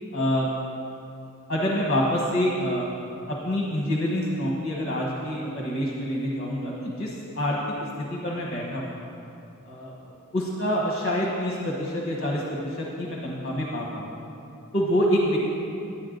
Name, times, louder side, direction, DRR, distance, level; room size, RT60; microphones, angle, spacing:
voice 1, 0.1-0.5 1.5-2.9 3.3-7.6 8.1-8.8 9.6-14.2 14.7-15.4, equal, 45° left, -2 dB, 1.2 m, -27 dB
10.0 x 9.7 x 3.9 m, 2.7 s
head